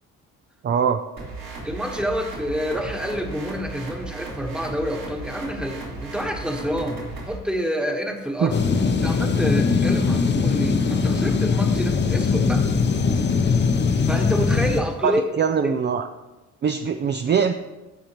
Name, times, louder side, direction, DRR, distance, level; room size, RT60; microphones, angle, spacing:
voice 1, 0.6-1.0 8.4-8.5 15.0-16.0 16.6-17.5, right 7 dB, 35° right, 7 dB, 0.4 m, -22 dB
sound 1, 1.2-7.4, right 3 dB, 65° right, 2.8 m, -36 dB
voice 2, 1.6-8.6 9.0-12.7 14.1-15.2 15.6-15.7, equal, 5° right, 3 dB, 1.2 m, -28 dB
sound 2, 8.5-14.8, left 5 dB, 35° left, 0.8 m, -21 dB
14.5 x 5.0 x 3.0 m, 1.1 s
cardioid pair, 90°, 30 cm